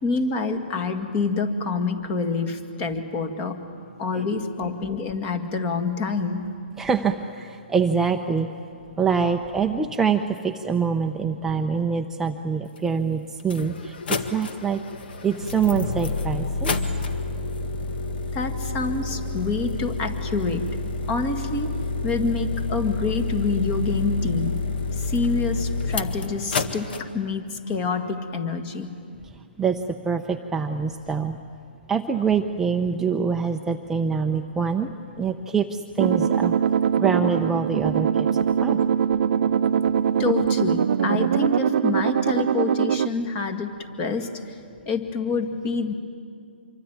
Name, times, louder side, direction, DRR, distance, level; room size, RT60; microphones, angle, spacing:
voice 1, 0.0-3.6 4.0-6.4 18.3-20.8 21.1-21.8 22.0-24.6 24.9-28.9 40.2-43.7 44.0-44.6 44.9-45.9, left 4 dB, 25° left, 7 dB, 2.0 m, -27 dB
voice 2, 6.8-8.5 9.0-14.8 15.2-16.7 29.6-31.4 31.9-34.9 35.2-36.6 37.0-38.3 38.6-38.8, right 6 dB, 5° right, 4 dB, 0.7 m, -25 dB
sound 1, 12.8-12.9 13.4-27.0, left 3 dB, 65° left, 1.9 m, -29 dB
sound 2, 36.0-43.1, right 8 dB, 60° right, 0.6 m, -22 dB
25.5 x 24.0 x 9.5 m, 2.4 s
hypercardioid pair, 150°, 6 cm